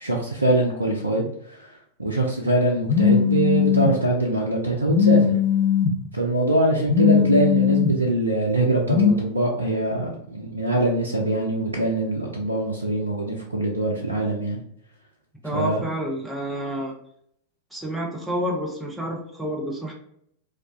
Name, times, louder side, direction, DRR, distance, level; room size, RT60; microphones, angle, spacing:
voice 1, 0.0-1.7 2.0-5.2 6.1-14.6 15.5-15.9, right 2 dB, 85° right, -1 dB, 0.4 m, -23 dB
Telephone, 2.9-3.9 4.9-5.9 6.9-7.9 8.9-9.1, left 7 dB, 55° left, 0.6 m, -19 dB
voice 2, 15.4-16.9 17.7-19.9, equal, ahead, -2 dB, 0.6 m, -29 dB
2.3 x 2.1 x 2.4 m, 0.70 s
figure-of-eight pair, 90°, 0 cm